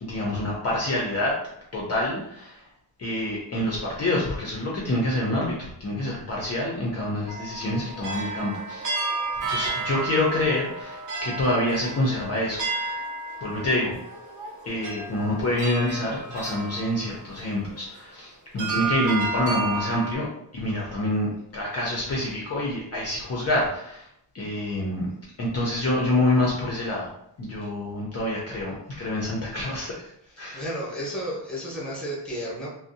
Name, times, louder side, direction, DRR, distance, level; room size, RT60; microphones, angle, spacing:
voice 1, 0.0-1.4 1.7-2.6 3.0-8.9 9.5-13.0 13.4-14.0 14.6-20.3 20.5-21.3 21.5-24.1 24.3-25.1 25.4-27.1 27.4-30.1 30.4-30.6, left 1 dB, 35° left, -4 dB, 0.5 m, -27 dB
sound 1, 7.3-17.8 18.6-20.1, right 3 dB, 45° right, 0.5 m, -32 dB
voice 2, 30.3-32.7, equal, ahead, -5 dB, 0.7 m, -32 dB
2.5 x 2.0 x 2.6 m, 0.73 s
wide cardioid pair, 150°, 43 cm